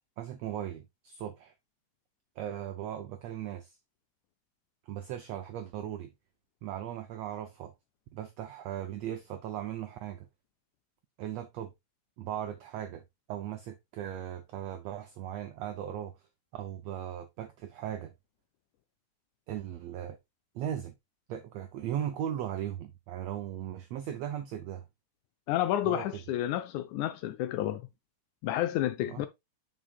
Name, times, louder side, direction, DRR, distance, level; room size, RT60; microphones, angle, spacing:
voice 1, 0.2-1.5 2.4-3.8 4.9-6.1 6.6-7.7 8.1-10.3 11.2-11.7 12.2-13.0 13.3-16.1 16.5-18.1 19.5-20.2 20.5-20.9 21.3-24.8 25.8-26.2 29.1-29.3, right 10 dB, 90° right, 1.4 m, -38 dB
voice 2, 25.5-27.9 28.4-29.3, left 13 dB, 80° left, 1.8 m, -30 dB
7.4 x 6.1 x 2.3 m
omnidirectional pair, 3.8 m